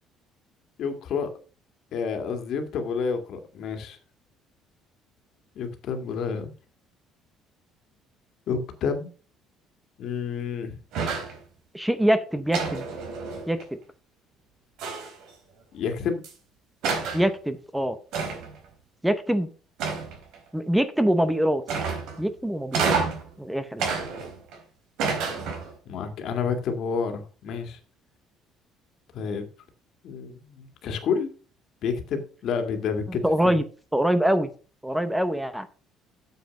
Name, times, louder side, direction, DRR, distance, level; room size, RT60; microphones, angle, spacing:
voice 1, 0.8-1.3 1.9-4.0 5.6-6.5 8.5-9.1 10.0-10.8 15.7-16.2 25.9-27.8 29.1-29.5 30.0-31.3 31.8-33.6, left 6 dB, 50° left, 6 dB, 2.0 m, -29 dB
sound 1, 10.9-11.4 12.5-13.6 14.8-15.3 16.2-16.3 16.8-17.3 18.1-18.6 19.8-20.4 21.7-22.2 22.7-23.3 23.8-24.6 25.0-25.7, right 5 dB, 70° right, 4.2 m, -29 dB
voice 2, 11.7-12.9 13.5-13.8 17.1-18.0 19.0-19.5 20.5-21.6 22.2-23.0 23.4-23.9 33.2-33.6 33.9-34.5 34.8-35.7, equal, 5° right, 12 dB, 0.7 m, -24 dB
9.2 x 7.3 x 5.2 m, 0.37 s
cardioid pair, 165°, 0 cm